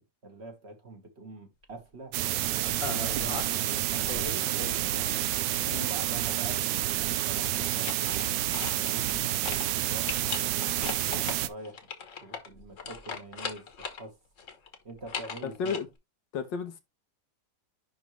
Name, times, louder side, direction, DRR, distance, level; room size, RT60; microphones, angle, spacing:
voice 1, 0.0-2.2 2.5-4.8 5.9-11.9 12.2-14.2 14.8-15.7, right 2 dB, 40° right, 1.6 m, -46 dB
sound 1, 2.1-11.5, right 13 dB, 80° right, 1.2 m, -29 dB
sound 2, 2.8-3.7 4.1-5.4 7.5-9.2 9.4-9.7 10.1-14.0 14.4-15.8, left 6 dB, 50° left, 1.4 m, -39 dB
voice 2, 15.4-15.9 16.3-16.8, left 6 dB, 90° left, 1.8 m, -33 dB
10.5 x 3.6 x 3.1 m
omnidirectional pair, 1.9 m